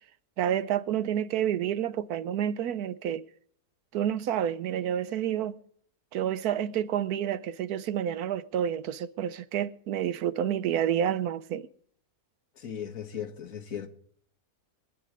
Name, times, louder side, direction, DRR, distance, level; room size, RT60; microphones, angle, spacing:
voice 1, 0.4-3.2 3.9-5.5 6.1-11.7, right 10 dB, 90° right, 1.3 m, -29 dB
voice 2, 12.6-13.9, left 8 dB, 65° left, 1.7 m, -37 dB
22.0 x 9.7 x 4.8 m
omnidirectional pair, 1.6 m